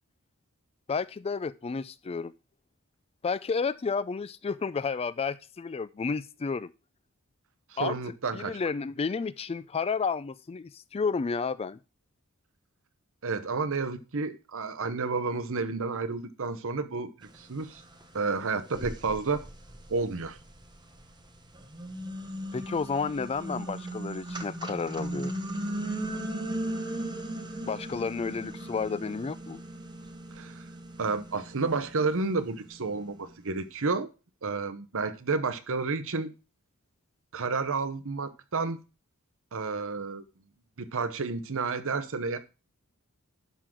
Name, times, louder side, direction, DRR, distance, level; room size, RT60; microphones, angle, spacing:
voice 1, 0.9-2.3 3.2-6.7 7.8-8.0 8.3-11.8 22.5-25.4 27.7-29.6, left 5 dB, 25° left, 0.4 m, -31 dB
voice 2, 7.7-8.6 13.2-17.8 18.1-19.4 19.9-20.4 30.3-30.6 31.0-34.1 34.4-36.3 37.3-38.8 39.5-40.2 40.8-42.4, right 4 dB, 65° right, 0.9 m, -31 dB
sound 1, 18.0-18.1 18.7-21.0 21.5-32.8, right 1 dB, 20° right, 1.1 m, -37 dB
11.0 x 3.8 x 6.0 m
head